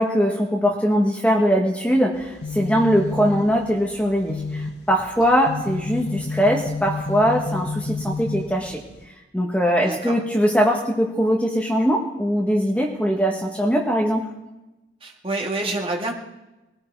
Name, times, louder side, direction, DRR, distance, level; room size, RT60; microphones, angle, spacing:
voice 1, 0.0-8.8 9.3-14.3, equal, 5° left, 0 dB, 1.3 m, -21 dB
sound 1, 2.1-9.0, left 3 dB, 60° left, 1.0 m, -31 dB
voice 2, 9.8-10.1 15.0-16.1, right 2 dB, 30° right, 1 dB, 1.7 m, -28 dB
20.5 x 13.0 x 4.6 m, 1.0 s
head